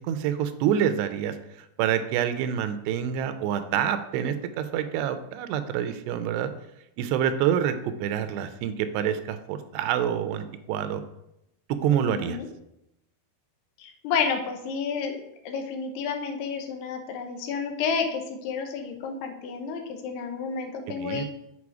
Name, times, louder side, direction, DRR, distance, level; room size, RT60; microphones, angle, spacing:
voice 1, 0.1-1.4 1.8-6.5 7.0-11.0 11.7-12.4 21.0-21.3, right 9 dB, 85° right, 10 dB, 2.7 m, -27 dB
voice 2, 11.9-12.5 13.8-15.2 15.5-21.3, left 6 dB, 85° left, 4 dB, 2.8 m, -30 dB
7.1 x 4.5 x 4.8 m, 0.83 s
omnidirectional pair, 4.8 m